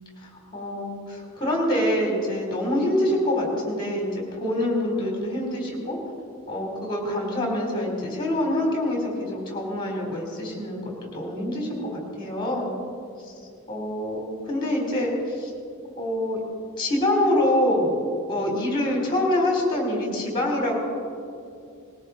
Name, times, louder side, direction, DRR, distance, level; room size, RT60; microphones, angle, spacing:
voice 1, 0.2-6.0 6.5-12.7 13.2-13.3 13.7-15.5 16.0-16.4 16.8-18.0 18.3-20.7, left 1 dB, 20° left, -1 dB, 3.8 m, -25 dB
20.0 x 17.0 x 4.2 m, 2.4 s
head